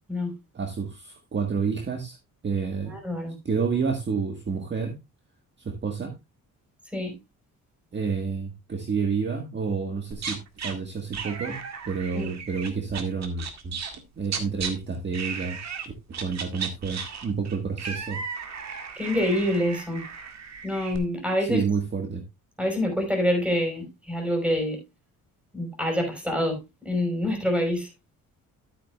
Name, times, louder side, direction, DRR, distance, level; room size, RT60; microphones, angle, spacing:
voice 1, 0.5-2.2 2.4-3.0 3.4-4.9 5.6-6.1 7.9-11.6 11.9-13.8 14.2-15.6 16.2-18.2 21.5-22.2, right 5 dB, 30° right, 1.7 m, -29 dB
voice 2, 2.9-3.3 6.9-7.1 12.1-12.3 19.0-20.0 20.6-21.6 22.6-24.8 25.5-27.9, left 1 dB, 5° right, 5.2 m, -26 dB
sound 1, 10.1-10.7 11.1-14.7 15.1-15.9 16.1-21.0, right 6 dB, 50° right, 2.0 m, -35 dB
13.5 x 8.5 x 2.4 m
cardioid pair, 130°, 34 cm